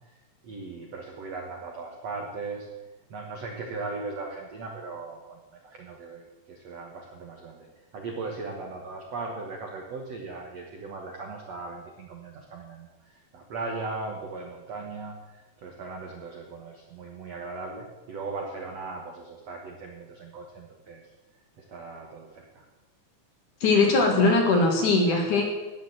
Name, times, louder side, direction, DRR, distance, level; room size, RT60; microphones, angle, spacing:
voice 1, 0.4-2.7 3.1-7.7 7.9-12.9 13.3-21.1 21.7-22.6, right 3 dB, 75° right, 1 dB, 1.5 m, -38 dB
voice 2, 23.6-25.4, left 3 dB, 55° left, 1 dB, 2.7 m, -20 dB
18.5 x 7.0 x 7.9 m, 1.2 s
omnidirectional pair, 5.3 m